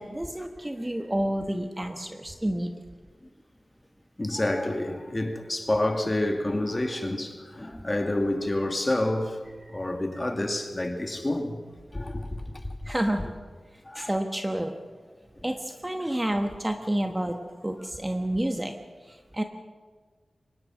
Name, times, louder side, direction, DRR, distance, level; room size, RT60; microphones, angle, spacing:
voice 1, 0.0-2.8 9.7-9.8 12.8-13.3 14.0-14.7 15.4-19.4, right 1 dB, 15° right, 1.2 m, -30 dB
voice 2, 4.2-9.4 9.7-11.6 11.9-12.9 13.8-14.1, left 1 dB, 20° left, 2.2 m, -28 dB
24.0 x 19.5 x 6.2 m
wide cardioid pair, 110°, 0 cm